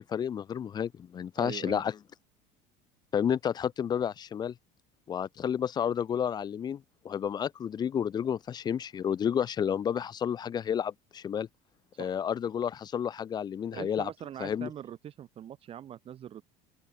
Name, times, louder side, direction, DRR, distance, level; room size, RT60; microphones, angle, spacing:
voice 1, 0.0-1.9 3.1-4.5 5.1-11.5 12.0-14.1 14.4-14.7, left 8 dB, 20° left, 0.8 m, -31 dB
voice 2, 1.4-1.8 11.9-12.2 13.7-16.4, right 10 dB, 30° right, 7.0 m, -42 dB
open air
cardioid pair, 165°, 18 cm